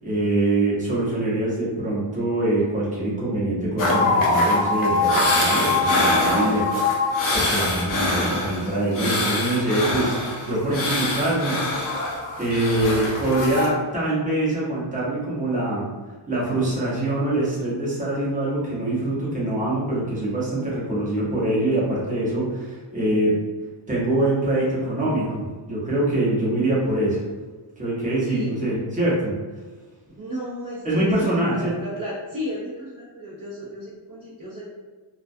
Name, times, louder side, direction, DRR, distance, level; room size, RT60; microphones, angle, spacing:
voice 1, 0.0-7.0 7.3-10.2 10.4-11.6 12.4-15.9 16.3-23.4 23.9-27.2 27.8-29.3 30.8-31.7, right 1 dB, 15° right, -8 dB, 0.8 m, -24 dB
sound 1, 3.8-13.7, left 2 dB, 45° left, 0.6 m, -23 dB
voice 2, 28.2-28.6 30.2-34.6, equal, 45° right, -7 dB, 0.6 m, -34 dB
2.2 x 2.2 x 2.6 m, 1.4 s
wide cardioid pair, 140°, 48 cm